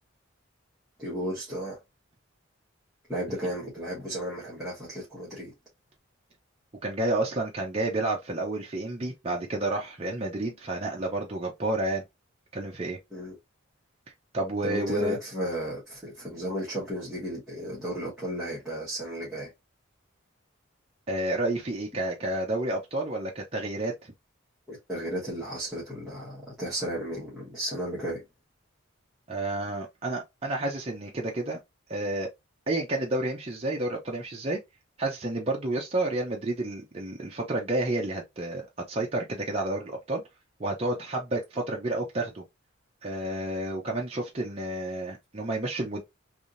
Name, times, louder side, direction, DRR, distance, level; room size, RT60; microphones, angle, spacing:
voice 1, 1.0-1.8 3.1-5.5 13.1-13.4 14.6-19.5 24.7-28.2, equal, 5° right, 1.3 m, -34 dB
voice 2, 6.8-12.0 12.5-13.0 14.3-15.2 21.1-23.9 29.3-31.6 31.9-32.3 32.7-34.6 35.0-40.2 40.6-42.4 43.0-46.0, right 2 dB, 30° right, 0.6 m, -30 dB
3.4 x 2.7 x 2.5 m
head